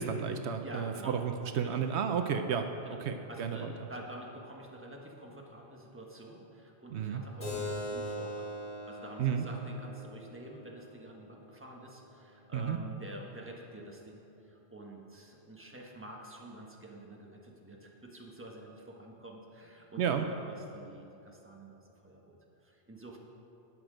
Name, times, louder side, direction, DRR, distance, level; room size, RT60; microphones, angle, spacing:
voice 1, 0.0-2.7 3.0-3.7 6.9-7.2 9.2-9.5 12.5-12.8 20.0-20.3, right 7 dB, 80° right, 7 dB, 0.9 m, -32 dB
voice 2, 0.6-1.2 1.6-1.8 2.8-3.0 3.3-8.5 8.8-23.2, right 1 dB, 10° right, -1 dB, 1.3 m, -48 dB
Keyboard (musical), 7.4-12.5, left 1 dB, 80° left, 3.4 m, -42 dB
18.5 x 6.2 x 5.1 m, 2.8 s
omnidirectional pair, 1.1 m